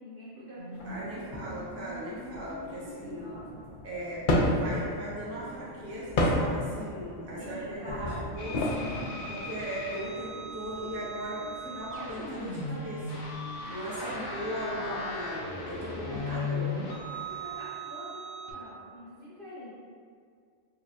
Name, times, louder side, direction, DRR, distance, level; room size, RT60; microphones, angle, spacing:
voice 1, 0.0-1.6 3.1-3.6 7.4-8.3 13.9-15.1 15.9-16.4 17.2-19.7, equal, 50° right, -9 dB, 0.7 m, -43 dB
sound 1, 0.6-16.5, right 3 dB, 85° right, 1.0 m, -51 dB
sound 2, 0.7-17.5, left 1 dB, 65° left, 0.5 m, -35 dB
voice 2, 0.8-3.3 3.8-13.1 13.7-16.7, equal, 15° right, -8 dB, 0.5 m, -38 dB
sound 3, 8.4-18.5, left 2 dB, 85° left, 1.1 m, -38 dB
4.7 x 2.7 x 2.3 m, 2.1 s
omnidirectional pair, 1.4 m